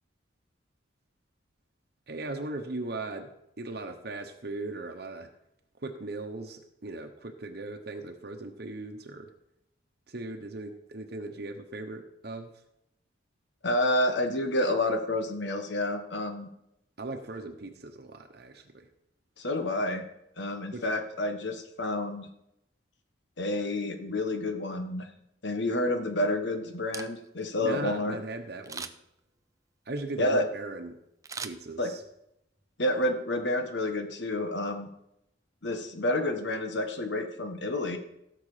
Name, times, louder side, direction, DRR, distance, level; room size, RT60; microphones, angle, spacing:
voice 1, 2.1-5.3 5.8-9.3 10.1-12.6 17.0-18.9 20.7-20.9 27.6-28.9 29.8-31.0 31.4-32.0, right 2 dB, 55° right, 4 dB, 1.1 m, -38 dB
voice 2, 13.6-16.5 19.4-20.0 20.4-22.3 23.4-25.1 25.4-28.2 30.2-30.4 31.8-31.9 32.8-34.9 35.6-38.0, left 1 dB, 70° left, 6 dB, 1.5 m, -29 dB
Camera, 26.7-27.5 28.6-29.2 31.2-32.2 32.6-32.7, right 5 dB, 20° right, 0.5 m, -41 dB
16.5 x 6.7 x 5.0 m, 0.81 s
head